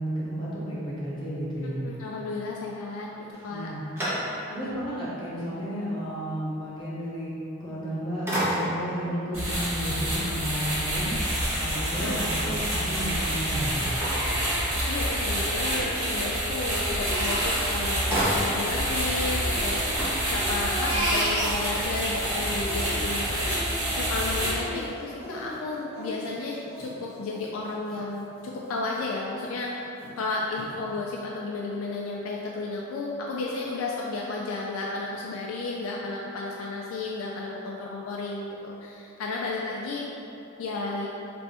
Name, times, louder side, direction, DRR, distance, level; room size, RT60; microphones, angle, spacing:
voice 1, 0.0-1.8 3.5-3.8 4.5-7.3 7.6-11.1 11.6-13.8, equal, 20° left, -9 dB, 0.8 m, -32 dB
voice 2, 1.8-3.7 12.0-12.2 14.9-29.7 30.2-40.0 40.6-41.1, left 3 dB, 75° left, -2 dB, 0.3 m, -33 dB
sound 1, 3.3-4.7 5.3-5.4 7.6-7.9 8.3-9.0 13.8-15.1 17.2-17.3 17.5-18.9 19.2-19.3 19.6-20.8, equal, 10° right, 0.7 m, -31 dB
sound 2, 9.3-24.5, equal, 70° right, 1.2 m, -28 dB
Crying sobbing, 11.7-13.3 13.7-16.1 16.4-18.9 19.3-22.1 22.5-28.0 28.4-28.5 28.9-29.5 30.0-30.1 30.5-30.7, equal, 40° right, 1.4 m, -35 dB
3.3 x 2.5 x 4.1 m, 2.9 s
head